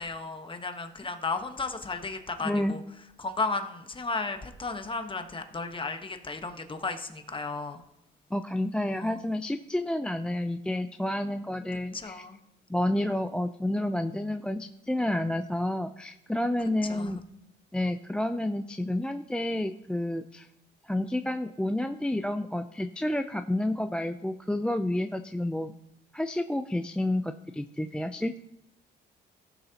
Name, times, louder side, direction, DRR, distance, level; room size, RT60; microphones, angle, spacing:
voice 1, 0.0-2.8 3.2-7.8 8.9-9.3 11.3-11.4 11.9-12.4 16.9-17.2, left 3 dB, 25° left, 6 dB, 1.2 m, -34 dB
voice 2, 8.3-12.2 12.7-17.2 17.7-20.5 20.8-25.7 26.1-28.4, left 1 dB, 5° left, 10 dB, 0.4 m, -30 dB
16.0 x 6.6 x 2.9 m, 0.84 s
cardioid pair, 90°, 20 cm